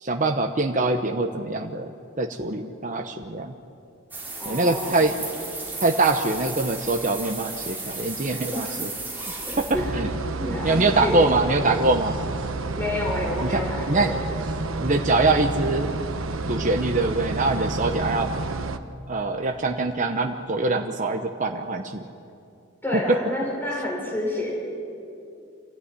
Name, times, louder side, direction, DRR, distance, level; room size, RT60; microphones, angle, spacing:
voice 1, 0.0-3.5 4.5-5.2 5.8-8.9 9.6-10.1 10.5-12.2 13.4-13.6 13.9-14.1 14.8-15.9 16.5-18.3 19.1-22.0 23.1-23.2, right 2 dB, 40° right, 4 dB, 1.0 m, -23 dB
sound 1, 4.1-9.7, right 3 dB, 10° right, 4.5 m, -34 dB
voice 2, 4.4-5.0 8.5-8.8 9.5-9.9 10.4-11.3 12.8-14.2 22.8-24.5, left 1 dB, 10° left, -2 dB, 4.2 m, -29 dB
sound 2, 9.7-18.8, right 2 dB, 85° right, 1.1 m, -30 dB
26.5 x 15.5 x 9.8 m, 2.6 s
head